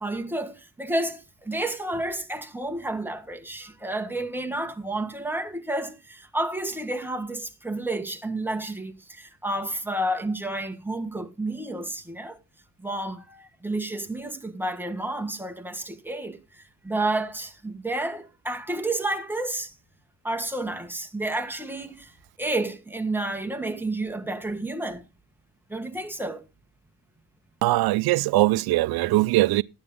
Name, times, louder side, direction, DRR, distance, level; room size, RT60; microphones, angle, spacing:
voice 1, 0.0-12.4 12.8-19.7 20.2-22.1 22.4-25.0 25.7-26.4, right 2 dB, 5° right, 1.6 m, -30 dB
voice 2, 27.6-29.6, right 18 dB, 90° right, 0.5 m, -21 dB
13.0 x 9.6 x 3.5 m
cardioid pair, 100°, 36 cm